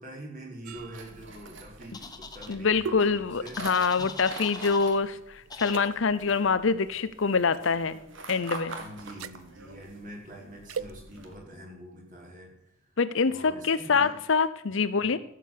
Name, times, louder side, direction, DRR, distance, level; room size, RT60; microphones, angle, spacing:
voice 1, 0.0-3.6 4.0-4.1 8.8-12.5 13.3-14.2 14.7-15.1, right 1 dB, 35° right, -1 dB, 4.0 m, -45 dB
sound 1, 0.6-5.2 5.6-5.8 7.5-7.8 9.0-9.4 10.7-10.9, right 6 dB, 80° right, 0.5 m, -41 dB
sound 2, 0.8-11.3, right 2 dB, 60° right, 1.9 m, -45 dB
sound 3, 1.9-2.6 3.5-5.0 5.5-5.9, left 4 dB, 20° left, 0.9 m, -42 dB
voice 2, 2.5-8.0 8.3-8.8 13.0-15.2, left 5 dB, 60° left, 14 dB, 0.6 m, -25 dB
14.5 x 7.6 x 6.6 m, 0.81 s
head